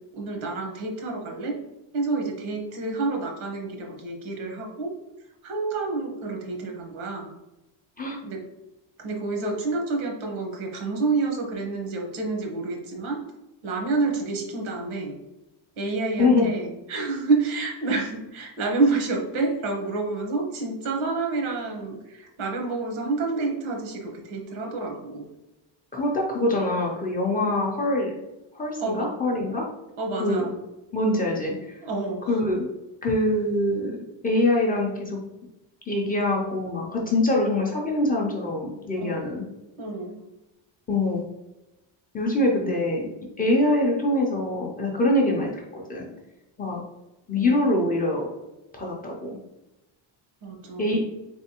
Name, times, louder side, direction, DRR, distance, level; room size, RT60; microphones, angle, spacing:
voice 1, 0.1-1.6 1.9-4.9 5.4-7.3 8.2-8.4 9.0-13.2 13.6-15.2 15.8-25.3 28.8-29.1 30.0-30.5 31.8-32.4 38.9-39.3 39.8-40.2 50.4-51.0, right 3 dB, 90° right, 2 dB, 1.2 m, -28 dB
voice 2, 25.9-28.1 28.5-29.7 30.2-30.4 30.9-31.8 32.3-32.7 33.0-33.9 34.2-35.2 35.9-39.4 40.9-41.2 42.1-43.1 43.4-46.1 46.6-46.8 47.3-48.3 48.7-49.4 50.8-51.0, left 1 dB, 20° left, -2 dB, 0.3 m, -24 dB
3.8 x 3.4 x 2.8 m, 0.98 s
cardioid pair, 180°, 47 cm